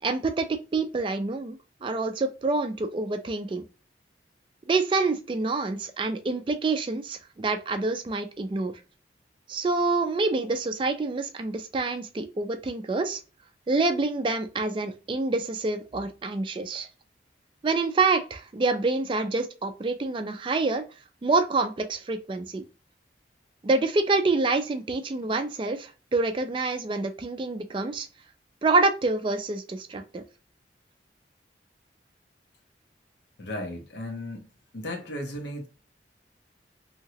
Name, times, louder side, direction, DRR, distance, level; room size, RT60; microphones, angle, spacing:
voice 1, 0.0-3.6 4.7-8.7 9.5-13.2 13.7-16.9 17.6-20.8 21.2-22.6 23.6-28.1 28.6-30.2, right 3 dB, 30° right, 0.3 m, -27 dB
voice 2, 33.4-34.5 34.7-35.7, left 1 dB, 80° left, 0.9 m, -35 dB
2.8 x 2.8 x 2.8 m
head